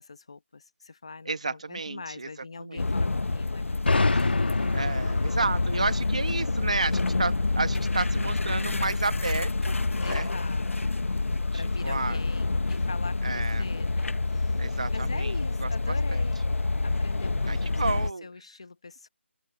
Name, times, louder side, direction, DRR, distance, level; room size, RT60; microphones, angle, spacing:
voice 1, 0.0-4.2 10.0-11.0 11.5-16.5 16.8-17.8 18.2-19.1, left 4 dB, 25° left, 1.1 m, -42 dB
voice 2, 1.3-2.3 2.6-2.8 4.1-4.2 4.7-9.8 10.0-10.3 11.5-12.2 13.2-13.6 14.6-15.3 15.6-16.2 17.5-18.3, right 3 dB, 30° right, 1.0 m, -31 dB
sound 1, 2.8-18.1, left 3 dB, 80° left, 0.8 m, -28 dB
sound 2, 3.9-7.5, left 3 dB, 50° left, 1.5 m, -28 dB
figure-of-eight pair, 180°, 7 cm